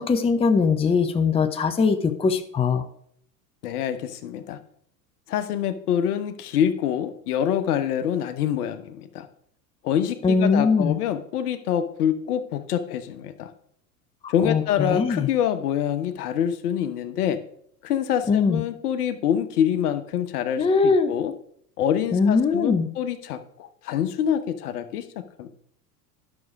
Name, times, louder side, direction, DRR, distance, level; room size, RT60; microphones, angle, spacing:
voice 1, 0.0-2.8 10.2-11.0 14.2-15.3 18.3-18.6 20.6-21.1 22.1-22.9, left 5 dB, 10° left, 8 dB, 0.7 m, -21 dB
voice 2, 3.6-4.6 5.3-9.3 9.8-13.5 14.3-17.4 17.8-21.3 21.8-25.5, left 9 dB, 70° left, 10 dB, 1.1 m, -26 dB
11.0 x 6.3 x 4.7 m, 0.66 s
hypercardioid pair, 90°, 48 cm